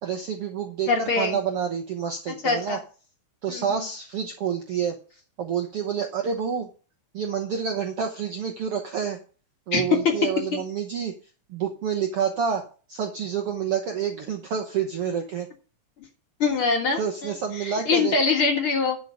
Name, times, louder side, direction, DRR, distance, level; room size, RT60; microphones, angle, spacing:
voice 1, 0.0-2.8 3.4-6.7 7.1-9.2 9.7-11.1 11.5-12.6 12.9-15.5 17.0-18.1, right 7 dB, 65° right, 5 dB, 1.5 m, -28 dB
voice 2, 0.9-1.4 2.4-2.8 3.5-3.6 9.7-9.8 16.4-17.3 17.6-19.0, left 4 dB, 45° left, 2 dB, 2.1 m, -23 dB
11.5 x 5.5 x 6.3 m, 0.38 s
omnidirectional pair, 3.8 m